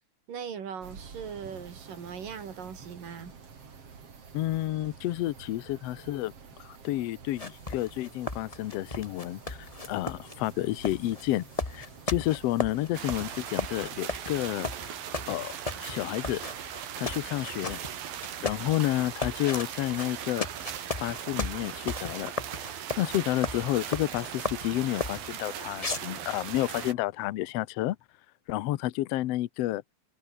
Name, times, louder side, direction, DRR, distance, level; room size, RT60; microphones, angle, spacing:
voice 1, 0.3-3.3, right 7 dB, 70° right, 4.9 m, -39 dB
sound 1, 0.8-13.4, right 5 dB, 45° right, 4.0 m, -49 dB
voice 2, 4.3-6.3 6.6-14.7 15.3-15.5 15.8-16.4 17.0-17.8 18.4-20.5 21.0-22.4 23.0-28.0 28.5-29.8, left 15 dB, 80° left, 1.4 m, -30 dB
sound 2, 7.3-25.3 25.7-26.5, left 3 dB, 40° left, 0.5 m, -36 dB
sound 3, 12.9-26.9, right 10 dB, 85° right, 4.0 m, -39 dB
omnidirectional pair, 4.0 m